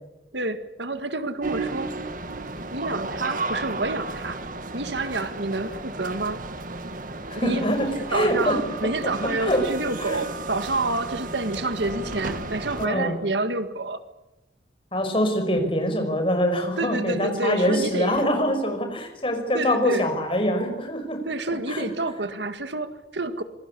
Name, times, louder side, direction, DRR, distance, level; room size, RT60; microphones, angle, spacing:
voice 1, 0.3-1.9 2.7-4.4 4.7-6.4 7.3-14.0 16.8-18.2 19.5-20.1 21.2-23.4, right 2 dB, 75° right, 10 dB, 1.8 m, -28 dB
sound 1, 1.4-12.9, right 3 dB, 45° right, 1.9 m, -33 dB
voice 2, 7.3-8.6 9.2-9.6 10.0-10.3 12.8-13.2 14.9-21.2 21.7-21.9, equal, 30° left, 6 dB, 5.4 m, -24 dB
27.0 x 21.5 x 8.5 m, 0.96 s
head